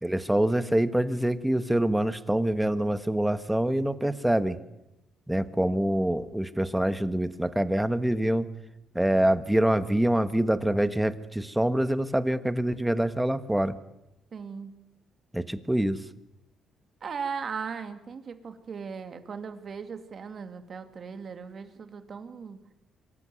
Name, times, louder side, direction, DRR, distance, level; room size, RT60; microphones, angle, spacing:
voice 1, 0.0-4.6 5.3-8.5 8.9-13.7 15.3-16.0, right 1 dB, 5° right, 12 dB, 1.4 m, -25 dB
voice 2, 14.3-14.7 17.0-22.6, right 6 dB, 50° right, 8 dB, 2.4 m, -38 dB
25.0 x 14.0 x 9.5 m, 0.89 s
cardioid pair, 90°, 0 cm